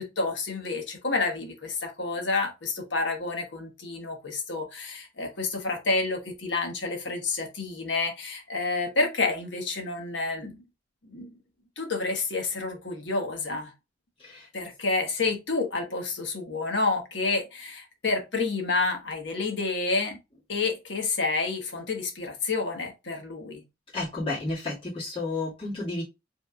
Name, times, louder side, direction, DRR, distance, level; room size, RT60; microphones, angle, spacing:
voice 1, 0.0-10.6 11.0-11.3 11.8-13.7 14.5-20.2 20.5-23.6, left 3 dB, 75° left, 1.3 m, -29 dB
voice 2, 23.9-26.0, left 2 dB, 30° left, 1.9 m, -31 dB
5.4 x 3.5 x 2.3 m
head